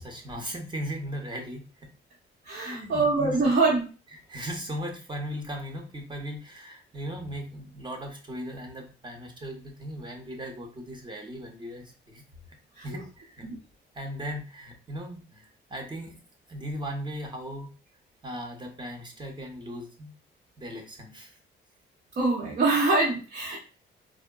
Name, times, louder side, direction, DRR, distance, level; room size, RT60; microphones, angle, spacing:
voice 1, 0.0-1.6 2.5-3.4 4.3-12.2 12.8-13.5 13.9-16.2 16.5-17.7 18.2-20.1 20.6-21.4, equal, 20° right, 2 dB, 0.7 m, -37 dB
voice 2, 2.4-3.8 12.8-12.9 13.4-13.6 22.2-23.6, right 3 dB, 50° right, -5 dB, 0.9 m, -24 dB
3.6 x 2.1 x 2.2 m, 0.36 s
cardioid pair, 100°, 21 cm